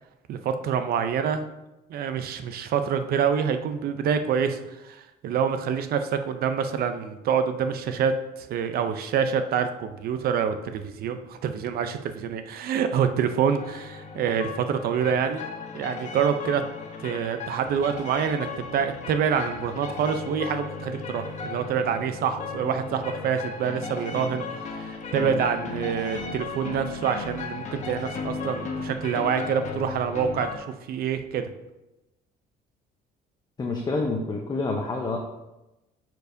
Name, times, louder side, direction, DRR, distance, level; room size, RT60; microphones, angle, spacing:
voice 1, 0.3-1.4 1.9-15.4 15.7-16.6 17.0-31.5, right 7 dB, 65° right, 8 dB, 0.6 m, -26 dB
sound 1, 13.6-30.6, left 4 dB, 45° left, 1.0 m, -36 dB
voice 2, 33.6-35.2, left 3 dB, 25° left, 1 dB, 0.7 m, -28 dB
9.3 x 4.6 x 2.7 m, 0.97 s
cardioid pair, 110°, 17 cm